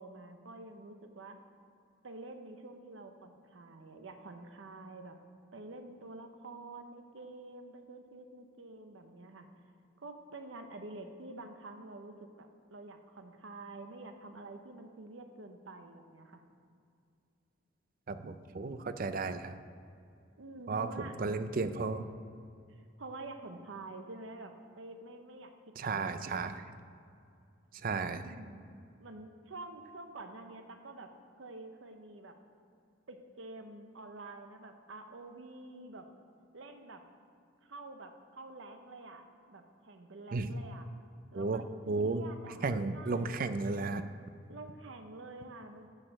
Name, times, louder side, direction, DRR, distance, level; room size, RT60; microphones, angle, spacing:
voice 1, 0.0-1.4 2.0-5.2 5.5-9.5 10.0-16.4 20.4-21.1 22.7-26.6 28.0-28.6 29.0-31.1 31.4-32.4 33.1-36.1 36.5-37.0 37.6-40.9 41.3-42.7 42.9-43.4 44.5-45.9, right 2 dB, 80° right, 6 dB, 0.8 m, -48 dB
voice 2, 18.1-19.6 20.7-22.1 25.8-26.7 27.7-28.3 40.3-40.6 41.3-42.3 42.6-44.0, right 3 dB, 45° right, 10 dB, 0.4 m, -34 dB
7.4 x 6.5 x 6.2 m, 2.4 s
head